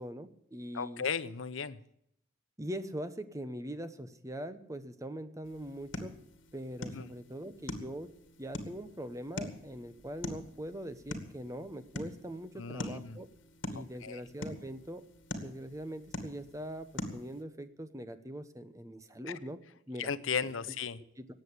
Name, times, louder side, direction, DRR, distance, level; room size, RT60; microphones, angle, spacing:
voice 1, 0.0-1.0 2.6-6.2 6.5-13.3 13.7-15.1 15.4-16.9 17.1-19.6 19.9-20.1 21.2-21.3, equal, 15° right, 11 dB, 1.0 m, -42 dB
voice 2, 0.7-1.8 6.9-7.1 12.6-13.2 13.8-14.2 19.3-19.4 20.0-21.0, left 6 dB, 85° left, 14 dB, 0.8 m, -36 dB
sound 1, 5.4-17.4, left 1 dB, 70° left, 2.3 m, -44 dB
19.0 x 7.8 x 8.3 m, 0.73 s
head